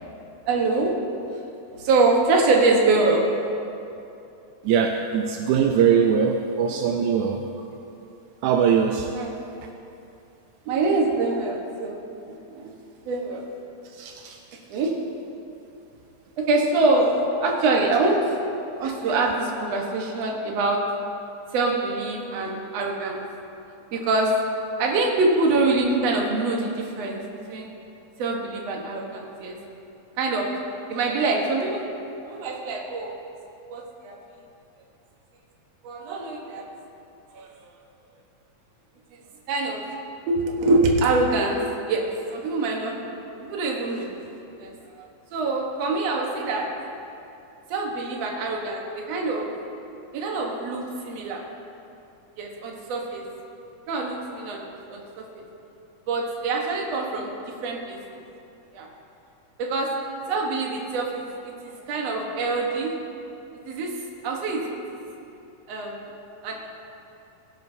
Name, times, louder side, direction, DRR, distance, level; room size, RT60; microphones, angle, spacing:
voice 1, 0.5-0.9 1.3-1.5 1.8-3.2 9.1-9.3 10.7-12.0 12.3-12.7 13.1-13.4 14.7-14.9 16.4-18.2 18.8-20.8 21.5-23.2 23.9-24.4 24.8-27.2 27.5-27.7 28.2-29.6 30.2-30.5 30.9-31.9 32.3-33.1 33.7-34.2 35.8-36.6 37.3-37.5 39.5-39.8 40.3-43.1 43.4-44.7 45.0-46.7 47.7-49.5 50.1-51.4 52.4-53.3 53.9-55.4 56.1-57.3 57.6-58.0 58.7-58.9 59.6-59.9 60.3-61.2 61.6-63.0 63.7-64.0 64.2-65.0 65.7-66.0 66.4-66.7, right 3 dB, 60° right, 0 dB, 2.2 m, -24 dB
voice 2, 4.6-7.5 8.4-9.1 14.0-14.4, right 7 dB, 85° right, 3 dB, 2.0 m, -21 dB
17.0 x 11.0 x 2.7 m, 2.7 s
omnidirectional pair, 3.5 m